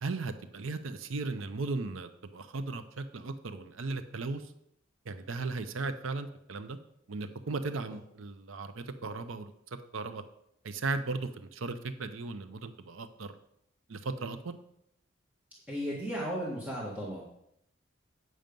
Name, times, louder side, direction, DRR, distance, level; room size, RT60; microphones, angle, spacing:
voice 1, 0.0-4.5 5.1-6.8 7.1-9.5 9.9-10.2 10.6-13.4 13.9-14.6, right 3 dB, 75° right, 10 dB, 0.6 m, -36 dB
voice 2, 15.7-17.2, equal, 5° right, -6 dB, 1.6 m, -35 dB
9.0 x 6.4 x 5.3 m, 0.76 s
head